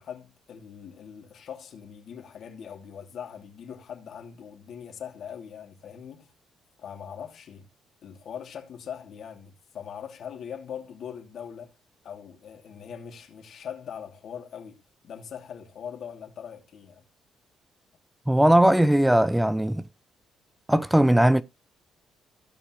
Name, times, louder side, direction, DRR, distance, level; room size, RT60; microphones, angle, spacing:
voice 1, 0.0-6.3 6.8-7.6 8.0-11.7 12.0-17.0, left 8 dB, 65° left, 2.6 m, -41 dB
voice 2, 18.3-19.9 20.7-21.4, right 1 dB, 5° right, 0.5 m, -19 dB
16.5 x 5.6 x 3.1 m
cardioid pair, 75°, 0 cm